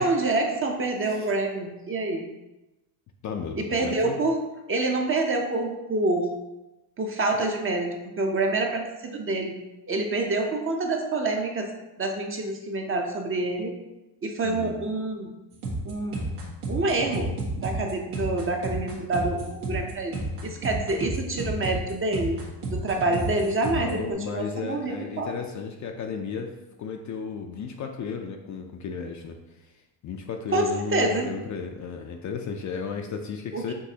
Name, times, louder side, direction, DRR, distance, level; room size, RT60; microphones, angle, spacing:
voice 1, 0.0-2.3 3.6-4.4 4.7-6.3 7.0-9.6 9.9-11.7 12.0-13.7 14.2-15.3 15.9-16.2 16.7-20.2 20.4-22.4 22.7-25.3 30.5-31.3 33.5-33.7, right 2 dB, 25° right, 3 dB, 0.6 m, -27 dB
voice 2, 3.2-4.2 14.4-14.8 23.7-26.5 26.8-29.7 30.0-33.7, left 6 dB, 40° left, 3 dB, 0.4 m, -34 dB
sound 1, 15.5-23.9, right 1 dB, 85° right, 1.5 m, -32 dB
6.2 x 2.7 x 2.7 m, 1.0 s
supercardioid pair, 100°, 50 cm